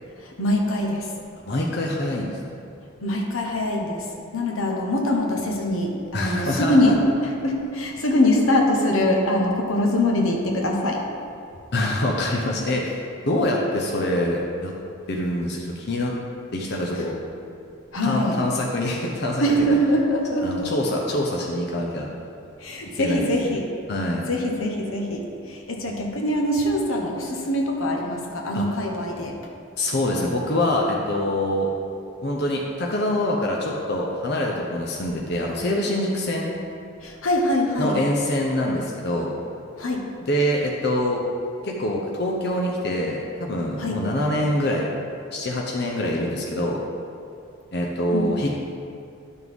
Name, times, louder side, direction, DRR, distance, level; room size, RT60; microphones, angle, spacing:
voice 1, 0.2-1.1 3.0-4.0 4.3-7.0 7.2-11.0 17.9-18.4 19.4-20.7 22.6-23.6 24.3-25.2 25.5-29.3 37.0-38.0 39.8-40.0 43.8-44.0 48.1-48.3, left 1 dB, 85° left, 1 dB, 1.1 m, -23 dB
voice 2, 1.4-2.3 6.1-6.9 11.7-13.0 13.3-14.7 15.1-16.1 16.5-17.2 18.0-19.4 20.4-22.1 23.0-23.6 23.9-24.3 28.5-28.7 29.8-31.7 32.2-36.5 37.8-39.3 40.3-41.2 41.6-44.9 45.3-46.8 47.7-48.6, left 1 dB, 55° left, -2 dB, 0.8 m, -25 dB
11.0 x 6.1 x 3.6 m, 2.5 s
head